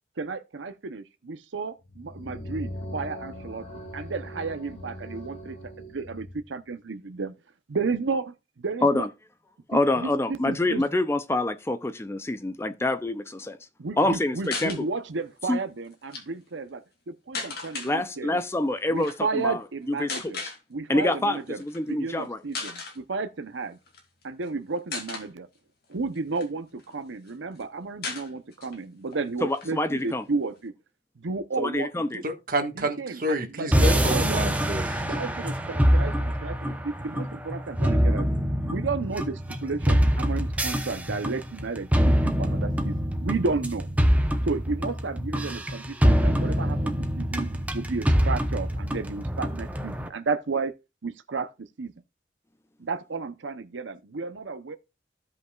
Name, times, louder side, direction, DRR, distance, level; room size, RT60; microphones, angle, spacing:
voice 1, 0.2-3.7 3.9-5.6 5.9-7.3 7.7-8.2 8.6-9.1 9.7-10.8 13.8-18.4 18.9-20.4 20.7-21.6 21.9-23.8 24.2-25.5 25.9-30.7 31.2-32.3 32.8-34.4 35.1-38.3 38.6-43.9 44.4-50.7 51.0-51.5 51.8-51.9 52.8-54.8, right 4 dB, 90° right, 0.7 m, -32 dB
sound 1, 1.8-6.5, equal, 35° left, 4.9 m, -40 dB
voice 2, 9.7-13.6 14.0-14.9 15.5-15.6 17.8-19.6 20.0-20.5 20.9-22.4 29.4-30.2 31.6-32.2, left 2 dB, 15° left, 0.4 m, -26 dB
sound 2, 14.4-14.8 15.9-16.2 17.3-17.9 19.0-19.2 20.1-20.6 21.6-21.8 22.2-22.3 22.5-23.0 23.9-24.5 24.9-25.3 25.9-26.9 27.3-27.4 27.6-27.7 28.0-28.8 29.1-29.2 29.5-30.6, left 4 dB, 55° left, 2.2 m, -36 dB
voice 3, 32.2-35.0, right 1 dB, 50° right, 1.5 m, -29 dB
sound 3, 33.7-50.1, equal, 10° right, 0.8 m, -25 dB
15.5 x 5.4 x 2.4 m
head